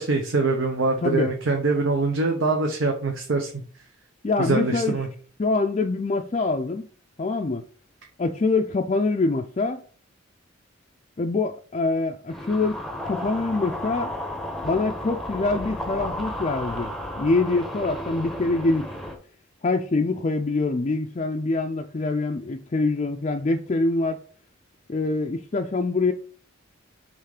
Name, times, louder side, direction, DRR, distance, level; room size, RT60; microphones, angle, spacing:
voice 1, 0.0-3.5 4.4-5.1, right 3 dB, 65° right, 0.9 m, -23 dB
voice 2, 1.0-1.3 4.2-5.0 5.4-6.9 7.2-7.6 8.2-9.8 11.2-14.1 14.6-16.9 17.2-18.9 19.6-24.2 24.9-26.1, left 3 dB, 35° left, 0.4 m, -25 dB
sound 1, 12.3-19.1, left 1 dB, ahead, 0.8 m, -33 dB
5.8 x 3.6 x 4.9 m
head